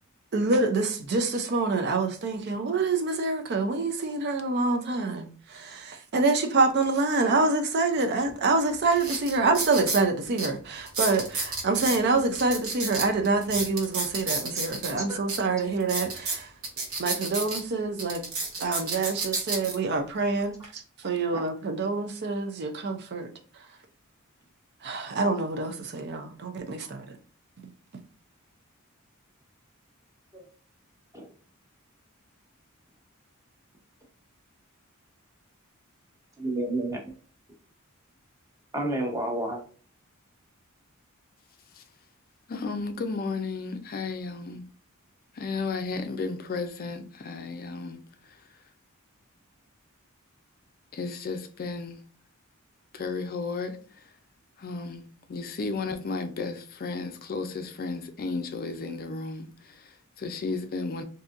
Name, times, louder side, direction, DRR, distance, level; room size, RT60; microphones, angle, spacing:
voice 1, 0.3-16.5 17.0-18.2 18.6-23.3 24.8-27.2, right 3 dB, 50° right, 0.5 m, -26 dB
sound 1, 8.3-8.4 8.9-10.0 10.4-10.5 10.9-12.0 12.3-14.9 15.3-15.4 15.8-17.6 18.0-19.7 20.4-20.6, right 3 dB, 70° right, 1.1 m, -31 dB
voice 2, 36.4-37.1 38.7-39.6, right 1 dB, 15° right, 0.8 m, -30 dB
voice 3, 42.5-44.7 45.3-48.4 50.9-52.0 52.9-54.1 54.6-61.0, left 4 dB, 45° left, 0.4 m, -34 dB
3.9 x 2.7 x 2.5 m
head